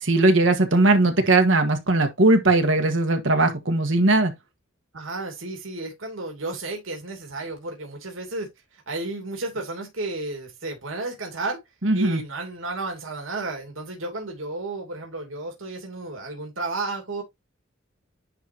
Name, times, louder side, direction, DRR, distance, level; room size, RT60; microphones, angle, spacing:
voice 1, 0.0-4.3 11.8-12.2, right 2 dB, 70° right, 1.5 m, -19 dB
voice 2, 4.9-8.5 8.9-11.6 11.9-17.2, right 2 dB, 85° right, 2.8 m, -32 dB
10.5 x 4.1 x 2.9 m
head